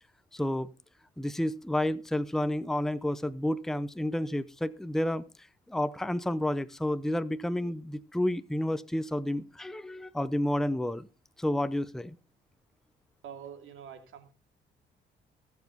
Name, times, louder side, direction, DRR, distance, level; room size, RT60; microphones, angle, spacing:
voice 1, 0.3-0.7 1.2-11.1 11.4-12.2, left 1 dB, ahead, 0.7 m, -30 dB
voice 2, 13.2-14.3, right 8 dB, 80° right, 2.8 m, -45 dB
19.5 x 7.3 x 4.0 m
cardioid pair, 90°, 20 cm